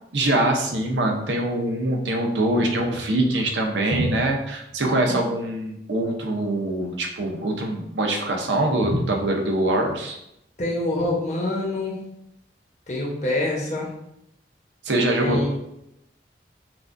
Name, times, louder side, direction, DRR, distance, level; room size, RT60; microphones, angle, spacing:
voice 1, 0.1-10.2 14.8-15.4, right 1 dB, 90° right, 1 dB, 0.7 m, -23 dB
voice 2, 4.8-5.3 10.6-11.9 12.9-13.9 15.2-15.6, left 1 dB, 40° left, -3 dB, 0.9 m, -26 dB
5.9 x 2.4 x 2.6 m, 0.81 s
head